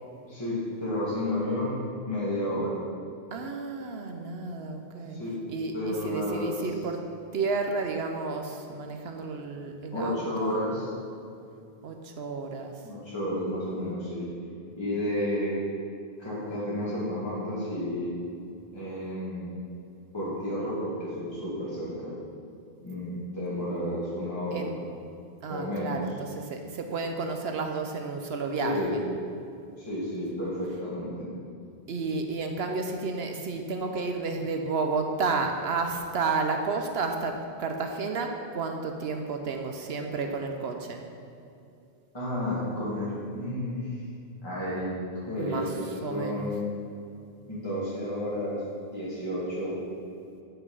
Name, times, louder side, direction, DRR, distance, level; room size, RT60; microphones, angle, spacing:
voice 1, 0.2-2.8 5.1-5.4 5.7-6.7 9.9-10.9 12.8-14.3 14.7-15.6 16.2-18.1 18.7-19.6 20.1-22.1 22.8-24.8 25.5-26.0 28.6-29.0 29.8-31.3 42.1-43.9 44.4-44.9 45.2-46.6 47.4-48.6 48.9-49.8, left 1 dB, 25° left, -10 dB, 2.1 m, -31 dB
voice 2, 3.3-5.2 5.5-7.0 7.3-10.6 11.8-12.7 24.5-24.7 25.4-29.0 31.9-41.0 45.4-45.6 46.0-46.5, right 4 dB, 75° right, 4 dB, 1.0 m, -31 dB
9.7 x 5.7 x 5.4 m, 2.6 s
omnidirectional pair, 1.1 m